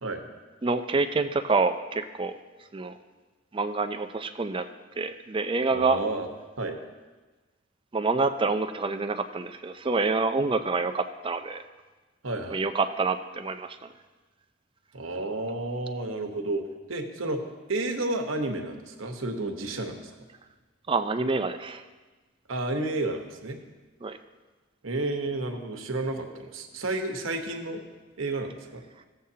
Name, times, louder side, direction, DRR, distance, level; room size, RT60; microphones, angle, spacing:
voice 1, 0.6-2.4 2.7-3.0 3.5-4.7 5.0-6.0 7.9-11.6 12.5-13.9 20.9-21.8 24.0-24.2, right 3 dB, 25° right, 9 dB, 0.4 m, -27 dB
voice 2, 5.7-6.3 6.6-6.8 12.2-12.6 14.9-16.6 16.9-17.4 17.7-20.1 22.5-23.6 24.8-27.8 28.2-28.8, right 2 dB, 85° right, 4 dB, 1.1 m, -31 dB
15.5 x 7.7 x 2.8 m, 1.3 s
head